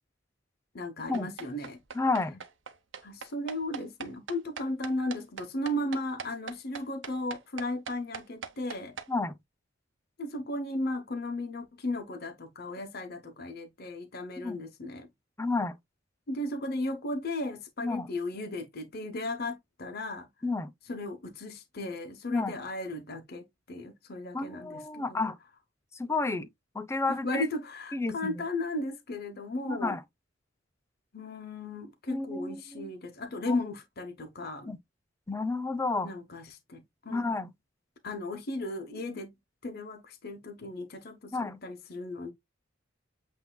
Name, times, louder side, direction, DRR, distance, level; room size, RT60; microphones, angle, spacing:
voice 1, 0.7-1.8 3.0-8.9 10.2-15.1 16.3-20.3 20.9-25.2 27.1-30.0 31.1-34.8 36.0-37.2 38.0-39.3 39.6-42.3, left 1 dB, 55° left, 0.8 m, -35 dB
sound 1, 1.1-9.1, right 6 dB, 75° right, 0.8 m, -41 dB
voice 2, 1.9-2.4 9.1-9.3 14.4-14.6 15.4-15.7 17.8-18.1 20.4-20.7 22.3-22.5 24.3-25.4 25.9-26.5 26.7-27.5 27.9-28.4 29.6-30.0 32.1-32.9 33.5-33.6 34.7-34.8 35.3-36.1 37.1-37.5 41.3-41.6, left 3 dB, 15° left, 0.5 m, -31 dB
8.1 x 2.7 x 2.2 m
head